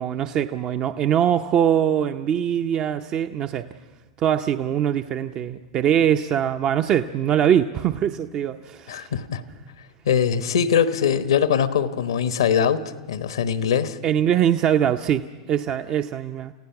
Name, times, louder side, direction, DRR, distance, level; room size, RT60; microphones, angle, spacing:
voice 1, 0.0-3.7 4.2-9.1 14.0-16.5, right 9 dB, 40° right, 7 dB, 0.6 m, -22 dB
voice 2, 8.9-9.4 10.1-14.0, left 7 dB, 75° left, 12 dB, 1.1 m, -22 dB
29.0 x 16.0 x 5.9 m, 1.3 s
hypercardioid pair, 100°, 3 cm